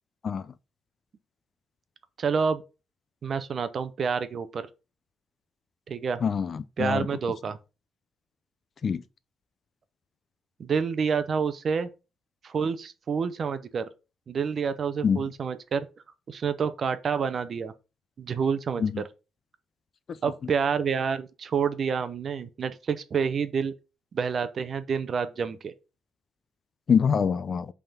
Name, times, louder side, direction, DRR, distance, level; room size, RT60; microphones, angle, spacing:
voice 1, 2.2-2.6 3.2-4.6 5.9-6.2 6.8-7.6 10.6-11.9 12.4-13.8 14.3-15.9 16.3-17.7 18.2-18.8 20.2-23.7 24.1-25.7, right 6 dB, 40° right, 0.7 m, -28 dB
voice 2, 6.2-7.1 8.8-9.0 15.0-15.2 18.8-19.0 26.9-27.7, left 6 dB, 40° left, 0.4 m, -24 dB
5.7 x 3.6 x 5.4 m
cardioid pair, 140°, 0 cm